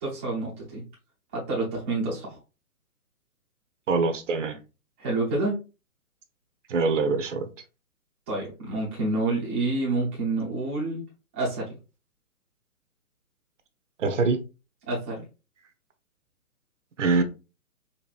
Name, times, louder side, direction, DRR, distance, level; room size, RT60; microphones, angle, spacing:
voice 1, 0.0-0.8 1.3-2.4 5.0-5.6 8.3-11.0 11.3-11.7 14.9-15.2, right 2 dB, 10° right, 0.5 m, -28 dB
voice 2, 3.9-4.6 6.7-7.5 14.0-14.4 17.0-17.2, right 4 dB, 55° right, 0.7 m, -24 dB
4.1 x 2.6 x 2.4 m
hypercardioid pair, 145°, 44 cm